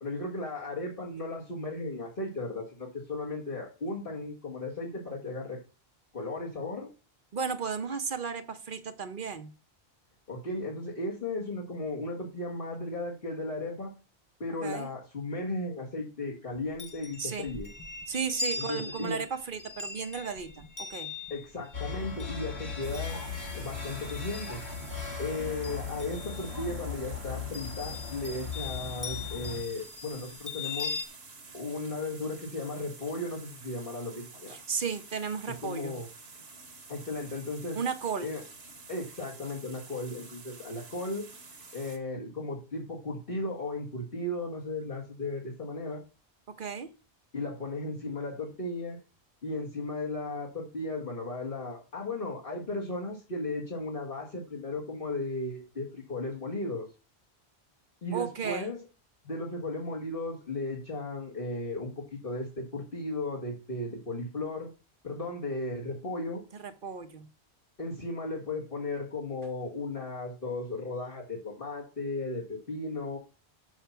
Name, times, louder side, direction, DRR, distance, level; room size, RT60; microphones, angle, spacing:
voice 1, 0.0-5.6 6.1-6.9 10.3-13.9 14.4-17.7 18.6-19.2 21.3-23.2 23.5-24.6 25.2-30.9 31.5-34.6 35.6-36.1 36.9-37.8 38.2-38.4 38.9-41.3 41.7-46.0 47.3-49.0 49.4-56.9 58.0-58.8 59.2-64.7 65.0-66.4 67.8-73.2, left 2 dB, 55° left, -5 dB, 2.2 m, -35 dB
voice 2, 7.3-9.5 14.6-14.9 17.2-17.5 18.1-21.1 34.5-36.0 37.7-38.3 46.5-46.9 58.1-58.7 66.6-67.3, right 6 dB, 55° right, 9 dB, 1.0 m, -34 dB
Chime, 16.5-25.0 25.4-26.7 27.5-31.1, left 4 dB, 20° left, 0.8 m, -41 dB
sound 1, 21.7-29.6, left 5 dB, 75° left, 2.6 m, -38 dB
sound 2, 22.8-42.0, right 3 dB, 70° right, 1.7 m, -50 dB
7.4 x 7.1 x 5.7 m, 0.34 s
omnidirectional pair, 1.1 m